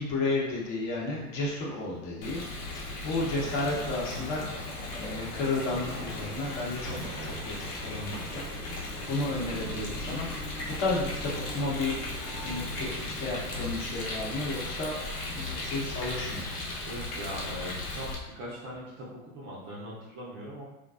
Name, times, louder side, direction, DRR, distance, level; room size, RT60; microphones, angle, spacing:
voice 1, 0.0-2.4 2.7-4.7 5.0-6.9 7.2-8.4 9.1-10.3 10.7-15.0 15.3-16.5, left 2 dB, 40° left, -4 dB, 0.8 m, -32 dB
Rain, 2.2-18.2, left 2 dB, 75° left, 0.9 m, -37 dB
sound 1, 3.4-9.2, equal, ahead, 0.8 m, -47 dB
sound 2, 5.5-13.7, right 2 dB, 65° right, 0.7 m, -44 dB
voice 2, 16.8-18.1 18.4-20.7, equal, 30° right, -6 dB, 0.5 m, -40 dB
2.3 x 2.2 x 2.3 m, 0.99 s
hypercardioid pair, 110°, 47 cm